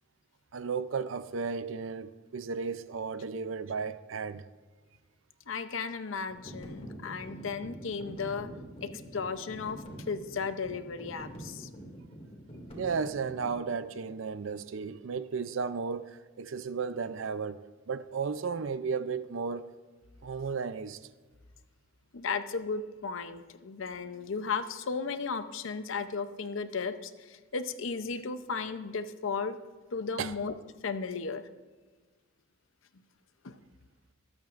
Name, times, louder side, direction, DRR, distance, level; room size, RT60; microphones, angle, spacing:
voice 1, 0.5-4.4 12.7-19.7 20.2-21.0 30.2-30.3, right 5 dB, 70° right, 0.5 m, -34 dB
voice 2, 5.5-8.5 8.8-11.7 22.1-29.6 29.9-30.5 30.8-31.4 33.4-33.6, left 5 dB, 70° left, 0.7 m, -35 dB
sound 1, 6.3-13.6, right 1 dB, 30° left, 2.4 m, -46 dB
24.5 x 8.8 x 2.5 m
head